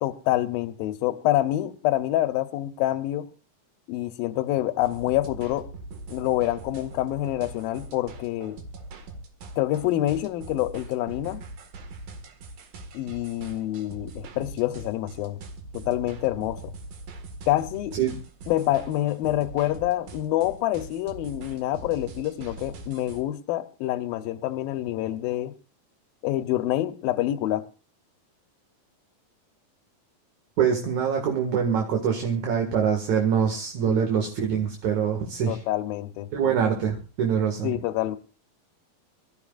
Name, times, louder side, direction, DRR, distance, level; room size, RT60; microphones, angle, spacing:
voice 1, 0.0-3.3 3.9-5.7 6.1-8.6 9.6-11.4 12.9-15.4 15.7-16.7 17.5-18.0 18.5-25.5 26.2-27.6 33.9-34.1 35.5-36.3 37.6-38.2, left 14 dB, 85° left, 2.7 m, -27 dB
sound 1, 4.8-23.2, right 2 dB, 75° right, 3.5 m, -42 dB
voice 2, 30.6-35.6 36.3-37.7, right 7 dB, 55° right, 3.1 m, -24 dB
26.5 x 14.0 x 2.5 m
omnidirectional pair, 4.0 m